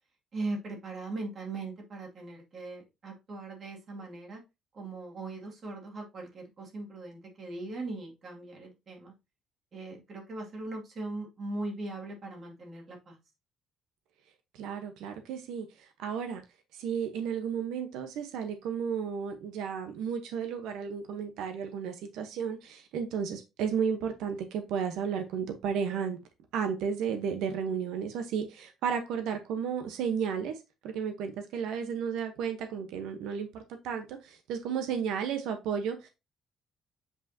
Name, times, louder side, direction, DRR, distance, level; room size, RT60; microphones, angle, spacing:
voice 1, 0.3-4.4 4.7-9.1 9.7-13.2, right 2 dB, 35° right, 2.3 m, -39 dB
voice 2, 14.5-16.4 16.7-26.2 26.5-36.1, right 7 dB, 90° right, 1.0 m, -33 dB
8.2 x 5.1 x 2.8 m
cardioid pair, 170°, 0 cm